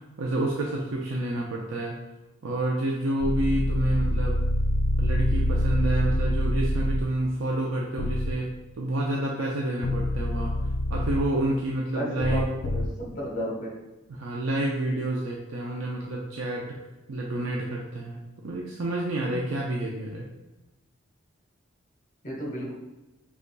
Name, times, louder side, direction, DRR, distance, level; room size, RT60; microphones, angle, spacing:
voice 1, 0.2-1.9 2.4-4.4 5.0-8.5 8.8-10.5 10.9-12.5 14.1-16.7 17.1-20.2, right 1 dB, 75° right, -2 dB, 0.5 m, -29 dB
sound 1, 3.2-7.0 8.0-8.3 9.8-11.2 12.2-12.9, left 1 dB, 85° left, 0.4 m, -25 dB
voice 2, 11.9-13.8 22.2-22.7, right 1 dB, 40° left, -2 dB, 1.1 m, -33 dB
5.2 x 3.5 x 2.2 m, 1.0 s
head